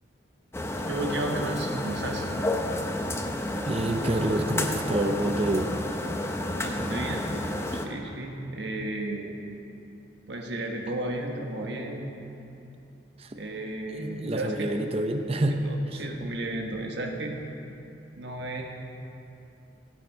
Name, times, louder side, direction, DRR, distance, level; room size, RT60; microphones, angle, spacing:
sound 1, 0.5-7.9, left 1 dB, 15° left, 0.6 m, -31 dB
voice 1, 0.9-2.3 6.5-7.4 7.7-9.4 10.3-12.3 13.3-14.7 15.6-17.4 18.1-18.6, right 1 dB, 65° right, 1 dB, 1.3 m, -33 dB
voice 2, 3.7-5.7 13.2-13.4 13.9-15.6, right 1 dB, 30° right, 6 dB, 0.6 m, -27 dB
16.5 x 7.6 x 4.6 m, 2.8 s
head